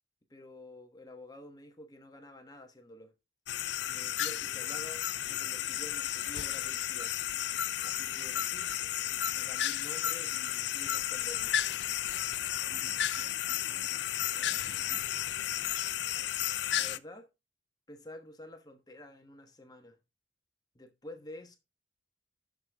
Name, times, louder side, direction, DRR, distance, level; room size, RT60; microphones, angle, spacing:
voice 1, 0.3-3.1 3.9-7.2 7.8-8.8 9.3-11.6 16.7-17.3 17.9-20.0 20.7-21.6, left 1 dB, 20° left, 1.2 m, -49 dB
sound 1, 3.5-17.0, left 11 dB, 70° left, 0.5 m, -33 dB
voice 2, 12.6-15.1, right 2 dB, 65° right, 2.2 m, -57 dB
10.5 x 6.4 x 3.5 m
head